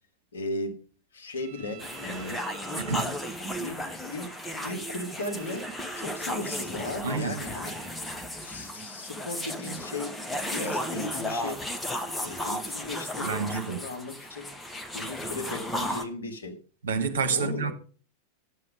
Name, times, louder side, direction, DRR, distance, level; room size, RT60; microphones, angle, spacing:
voice 1, 0.3-0.8 1.1-2.4 2.7-2.8 3.4-3.8 4.1-7.7 8.4-11.6 12.2-14.5 14.9-16.6 17.3-17.7, left 2 dB, 70° left, 2.1 m, -37 dB
sound 1, 1.4-8.0, right 15 dB, 40° right, 3.5 m, -52 dB
sound 2, 1.8-16.0, left 1 dB, 10° left, 1.3 m, -34 dB
voice 2, 2.8-3.1 7.0-7.4 13.2-13.8 16.8-17.7, right 5 dB, 65° right, 1.5 m, -29 dB
11.0 x 7.7 x 5.1 m
figure-of-eight pair, 90°, 0 cm